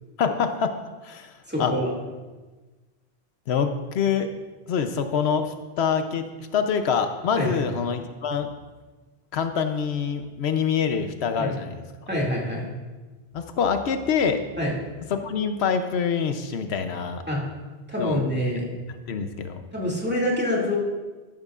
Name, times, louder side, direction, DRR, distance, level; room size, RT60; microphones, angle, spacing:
voice 1, 0.2-0.7 1.0-1.3 1.6-1.7 3.5-4.3 4.7-6.2 6.5-8.5 9.3-11.8 13.3-14.4 15.1-17.2 18.0-18.2 19.1-19.6, left 6 dB, 85° left, 8 dB, 1.0 m, -25 dB
voice 2, 1.5-1.9 7.4-7.6 11.4-11.5 12.1-12.7 14.6-14.7 17.3-17.4 17.9-18.6 19.7-20.8, left 1 dB, 10° right, -4 dB, 2.2 m, -26 dB
13.0 x 12.0 x 2.4 m, 1.3 s
omnidirectional pair, 1.1 m